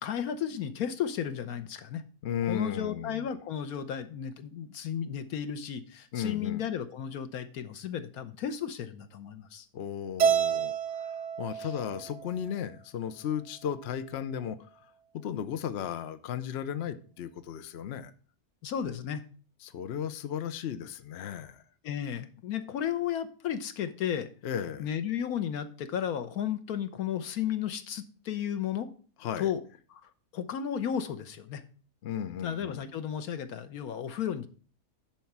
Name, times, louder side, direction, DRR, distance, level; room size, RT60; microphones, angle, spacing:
voice 1, 0.0-2.0 2.5-9.6 11.6-11.7 18.6-19.2 21.8-24.3 24.8-28.9 29.4-29.6 29.9-31.6 32.4-34.5, left 9 dB, 80° left, 11 dB, 1.3 m, -34 dB
voice 2, 2.2-3.3 6.1-6.6 9.7-10.8 11.4-14.6 15.2-18.1 19.6-21.6 24.4-24.9 29.2-29.5 32.0-32.8, left 9 dB, 55° left, 11 dB, 0.8 m, -35 dB
Keyboard (musical), 10.2-12.5, right 7 dB, 55° right, 1.6 m, -29 dB
10.5 x 4.5 x 5.9 m, 0.41 s
omnidirectional pair, 1.6 m